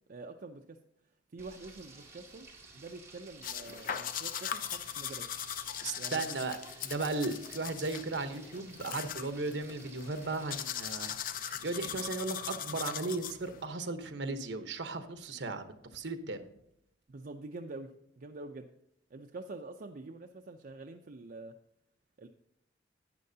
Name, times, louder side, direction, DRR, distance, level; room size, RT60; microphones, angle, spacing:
voice 1, 0.1-0.8 1.3-2.5 2.7-5.3 6.0-6.2 17.1-18.7 19.1-21.5 22.2-22.3, right 3 dB, 50° right, 4 dB, 0.5 m, -46 dB
Frying (food), 1.4-11.9, right 3 dB, 15° right, 2.1 m, -54 dB
sound 1, 3.4-13.7, left 9 dB, 50° left, 0.5 m, -40 dB
voice 2, 5.8-16.5, right 3 dB, 70° right, 8 dB, 1.0 m, -36 dB
12.0 x 9.2 x 2.7 m, 0.77 s
head